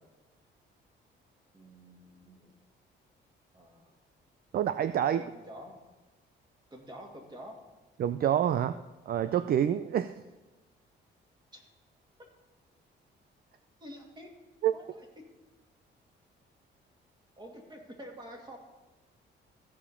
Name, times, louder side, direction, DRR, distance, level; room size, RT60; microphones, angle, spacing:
voice 1, 1.5-2.5 3.5-3.9 5.1-5.8 6.7-7.6 11.5-11.6 13.8-14.3 14.7-15.1 17.4-18.6, equal, 20° right, 1 dB, 2.4 m, -48 dB
voice 2, 4.5-5.3 8.0-8.8 9.1-10.1 14.6-14.7, right 10 dB, 50° right, 12 dB, 0.4 m, -27 dB
15.0 x 5.0 x 5.6 m, 1.1 s
cardioid pair, 90°, 20 cm